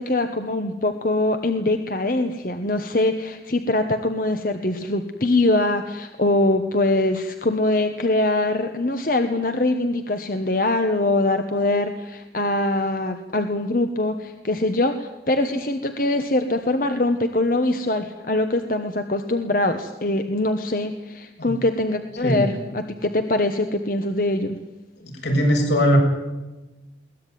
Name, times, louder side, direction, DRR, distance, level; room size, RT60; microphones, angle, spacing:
voice 1, 0.0-24.6, left 2 dB, 50° left, 7 dB, 1.3 m, -23 dB
voice 2, 25.2-26.0, equal, 80° left, 1 dB, 7.7 m, -20 dB
22.0 x 19.5 x 9.4 m, 1.1 s
head